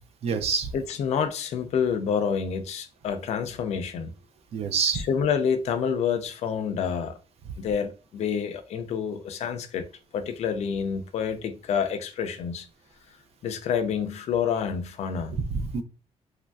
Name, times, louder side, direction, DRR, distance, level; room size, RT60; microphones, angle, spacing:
voice 1, 0.2-0.7 4.5-5.0 15.3-15.8, right 5 dB, 60° right, 0.4 m, -26 dB
voice 2, 0.7-4.1 4.9-7.2 7.6-9.9 10.1-12.7 13.4-15.3, left 7 dB, 70° left, 0.4 m, -28 dB
3.0 x 2.5 x 2.2 m
wide cardioid pair, 150°, 12 cm